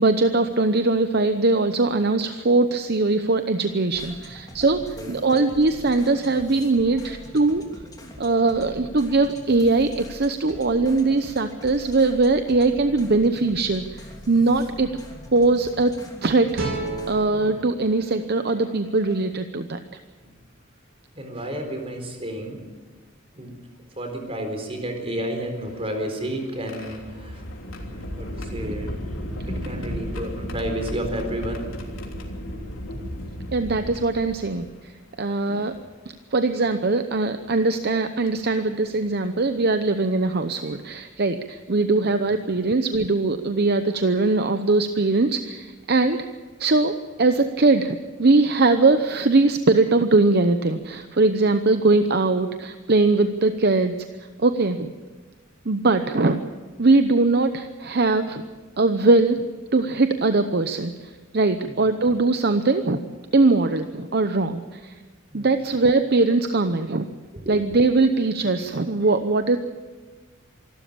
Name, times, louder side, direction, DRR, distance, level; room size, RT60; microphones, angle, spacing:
voice 1, 0.0-7.6 8.2-14.9 15.3-16.7 17.1-19.8 29.5-29.9 33.5-34.9 35.2-35.7 36.3-46.3 46.6-53.9 54.4-54.9 55.7-56.4 56.8-58.4 58.8-59.4 59.7-63.0 63.3-64.9 65.3-67.1 67.5-69.6, right 3 dB, 50° right, 8 dB, 0.8 m, -21 dB
sound 1, 3.9-19.3, left 1 dB, 20° left, 3.0 m, -43 dB
voice 2, 5.0-5.3 20.2-20.4 21.1-22.6 23.3-23.6 24.0-27.5 27.7-29.0 29.5-31.7 42.4-42.6 61.6-61.8 65.3-65.6 67.3-67.7, right 1 dB, 30° right, 4 dB, 4.2 m, -32 dB
sound 2, 16.5-19.7, right 2 dB, 80° right, 4.2 m, -34 dB
sound 3, 25.5-34.8 35.7-35.8 37.3-37.5 38.3-38.5 40.1-40.2 40.6-40.8, equal, 85° left, 3.3 m, -34 dB
26.0 x 13.0 x 8.7 m, 1.3 s
head